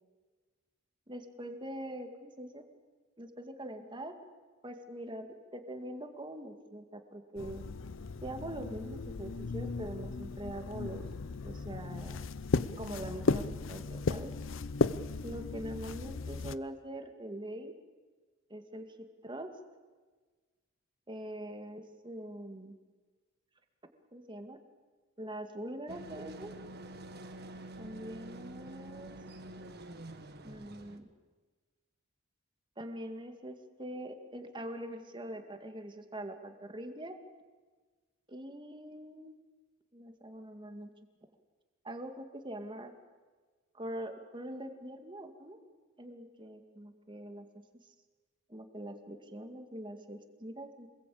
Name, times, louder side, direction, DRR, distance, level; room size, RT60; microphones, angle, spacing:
voice 1, 1.1-2.6 3.2-4.1 4.6-5.3 5.5-7.6 8.2-11.0 11.4-12.3 12.8-14.3 15.2-17.7 18.5-19.5 21.1-22.8 24.1-24.6 25.2-26.5 27.8-29.2 30.4-31.1 32.8-37.2 38.3-39.4 39.9-40.9 41.8-42.9 43.7-45.6 46.0-47.5 47.8-47.9 48.5-50.9, right 1 dB, 25° right, 6 dB, 2.3 m, -43 dB
sound 1, 7.4-16.6, left 3 dB, 70° left, 0.7 m, -35 dB
sound 2, 25.9-31.0, right 1 dB, 55° right, 1.7 m, -47 dB
27.5 x 21.0 x 8.7 m, 1.4 s
head